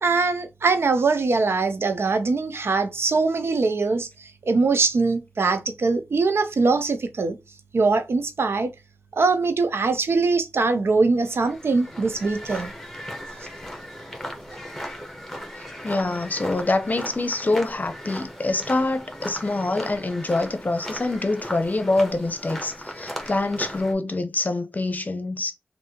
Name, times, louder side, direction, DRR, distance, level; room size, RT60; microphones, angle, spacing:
voice 1, 0.0-4.1 4.5-7.4 7.7-8.7 9.2-12.7, right 3 dB, 70° right, 0.6 m, -22 dB
sound 1, 11.2-23.9, equal, 5° left, 1.3 m, -37 dB
voice 2, 15.8-25.5, left 2 dB, 40° left, 0.7 m, -25 dB
3.4 x 2.7 x 2.9 m
cardioid pair, 45°, 4 cm